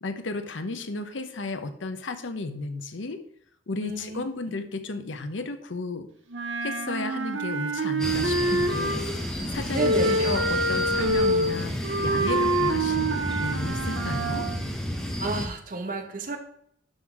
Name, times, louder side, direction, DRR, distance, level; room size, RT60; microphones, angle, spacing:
voice 1, 0.0-3.2 3.7-6.1 6.6-9.0 9.5-11.7 12.0-14.5, left 3 dB, 80° left, 9 dB, 0.8 m, -33 dB
voice 2, 3.8-4.2 9.7-10.3 15.2-16.4, right 2 dB, 45° right, 5 dB, 1.1 m, -30 dB
Wind instrument woodwind instrument, 6.3-9.2 9.8-14.6, right 1 dB, 75° right, 0.9 m, -26 dB
sound 1, 8.0-15.5, equal, 5° left, 1.0 m, -31 dB
11.5 x 4.0 x 4.7 m, 0.67 s
head